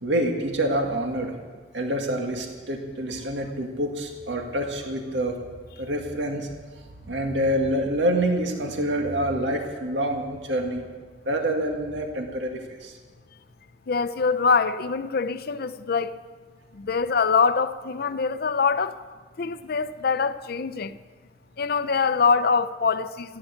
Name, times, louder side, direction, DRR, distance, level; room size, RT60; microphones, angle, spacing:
voice 1, 0.0-1.4 1.7-5.4 5.8-6.5 6.8-10.8 11.3-13.0, right 1 dB, 90° right, 1.9 m, -27 dB
voice 2, 13.9-16.2 16.7-19.0 19.4-21.0 21.6-23.4, left 5 dB, 60° left, 0.6 m, -24 dB
15.0 x 9.1 x 8.7 m
head